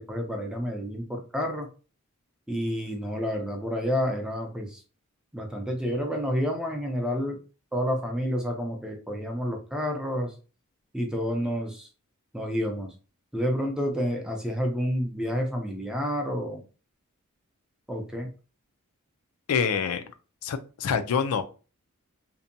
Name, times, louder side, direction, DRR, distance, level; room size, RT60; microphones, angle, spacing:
voice 1, 0.0-1.7 2.5-4.8 5.3-7.4 7.7-10.3 10.9-11.9 12.3-12.9 13.3-16.6 17.9-18.3, equal, 5° right, 2 dB, 0.4 m, -29 dB
voice 2, 19.5-20.0 20.4-21.4, left 6 dB, 80° left, 9 dB, 0.4 m, -26 dB
2.6 x 2.1 x 2.5 m, 0.35 s
head